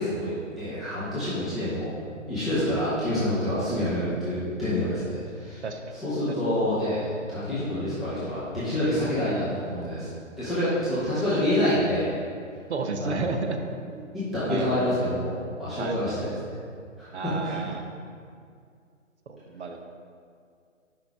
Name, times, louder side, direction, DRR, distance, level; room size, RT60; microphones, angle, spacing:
voice 1, 0.0-1.9 2.3-5.6 5.9-10.1 10.4-12.1 13.0-13.3 14.1-16.3 17.0-17.6, left 1 dB, ahead, -14 dB, 0.7 m, -27 dB
voice 2, 12.7-13.6 13.9-14.1 14.5-14.7 15.8-16.0 17.1-17.8 19.3-19.8, right 4 dB, 60° right, 5 dB, 0.8 m, -31 dB
5.7 x 5.2 x 4.8 m, 2.2 s
figure-of-eight pair, 140°, 38 cm